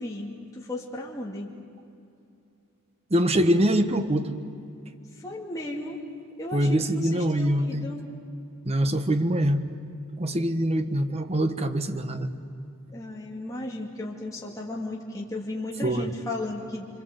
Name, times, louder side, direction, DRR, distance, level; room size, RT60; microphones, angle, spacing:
voice 1, 0.0-1.5 5.1-6.0 6.4-8.0 12.9-16.9, left 1 dB, 15° left, -3 dB, 2.4 m, -35 dB
voice 2, 3.1-4.3 6.5-7.9 8.6-9.7 10.2-12.3 15.8-16.1, right 1 dB, 30° right, 9 dB, 1.2 m, -24 dB
26.5 x 24.5 x 8.0 m, 2.6 s
head